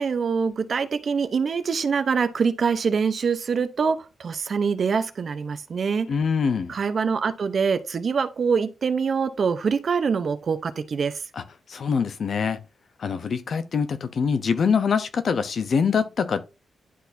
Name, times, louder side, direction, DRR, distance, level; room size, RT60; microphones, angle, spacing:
voice 1, 0.0-6.1 6.7-11.2, right 5 dB, 50° right, 0.7 m, -24 dB
voice 2, 6.1-6.8 11.4-11.5 11.7-12.6 13.0-16.4, left 6 dB, 55° left, 0.8 m, -24 dB
11.0 x 4.1 x 2.7 m
wide cardioid pair, 140°, 0 cm